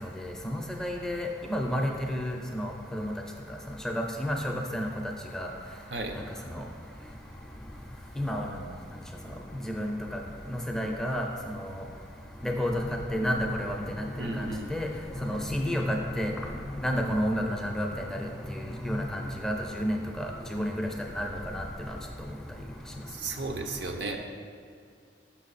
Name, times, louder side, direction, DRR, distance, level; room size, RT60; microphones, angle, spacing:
voice 1, 0.0-3.1 3.8-4.9 5.3-5.5 6.5-6.6 8.2-8.6 9.7-10.2 10.5-11.8 12.4-14.9 15.2-16.3 16.8-20.9 21.2-22.0, equal, 5° left, 1 dB, 0.4 m, -31 dB
voice 2, 14.2-14.7 23.1-24.2, right 3 dB, 75° right, 4 dB, 0.6 m, -34 dB
5.9 x 5.8 x 4.0 m, 2.3 s
head